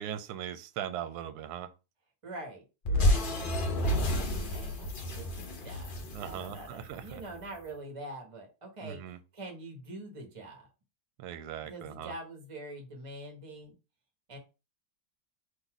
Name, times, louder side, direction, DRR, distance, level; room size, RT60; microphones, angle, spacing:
voice 1, 0.0-1.7 6.1-7.2 8.8-9.2 11.2-12.1, right 10 dB, 75° right, 1.1 m, -39 dB
voice 2, 2.2-5.9 6.2-9.0 9.3-10.7 11.7-13.7 14.3-14.4, right 1 dB, 25° right, 1.0 m, -45 dB
sound 1, 2.9-7.2, left 1 dB, 45° left, 0.7 m, -30 dB
4.0 x 2.7 x 4.6 m
omnidirectional pair, 1.7 m